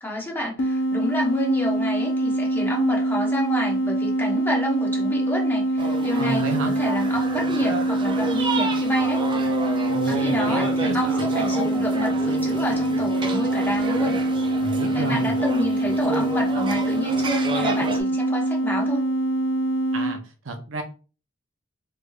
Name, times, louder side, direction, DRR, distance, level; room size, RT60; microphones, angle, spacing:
voice 1, 0.0-9.2 9.7-14.2 14.9-19.0, equal, 10° left, -2 dB, 1.0 m, -29 dB
sound 1, 0.6-20.2, right 1 dB, 70° left, 0.5 m, -24 dB
sound 2, 5.8-18.0, right 3 dB, 25° right, 0.4 m, -31 dB
voice 2, 6.1-6.7 9.9-11.3 14.6-15.3 19.9-20.8, right 2 dB, 75° right, 5 dB, 0.6 m, -31 dB
3.3 x 3.2 x 2.3 m, 0.36 s
head